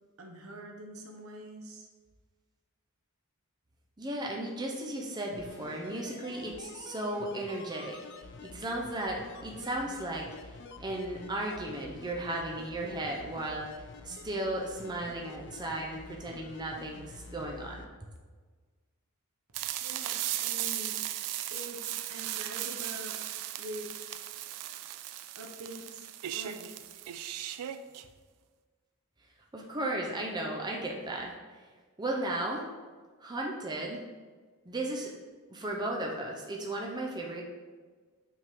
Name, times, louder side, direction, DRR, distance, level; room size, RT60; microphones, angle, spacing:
voice 1, 0.2-1.9 19.8-21.0 21.5-23.2 23.6-23.9 25.4-26.0 26.3-27.0, equal, 65° right, 2 dB, 0.9 m, -45 dB
voice 2, 4.0-10.2 10.8-13.7 14.0-17.8 29.5-31.3 32.0-32.7 33.2-34.0 34.7-35.1 35.5-37.4, right 1 dB, 20° right, -1 dB, 0.6 m, -35 dB
sound 1, 5.3-17.9 18.1-18.2, left 3 dB, 50° left, 0.5 m, -48 dB
sound 2, 19.5-28.0, right 13 dB, 90° right, 0.3 m, -37 dB
5.7 x 3.6 x 4.5 m, 1.4 s
head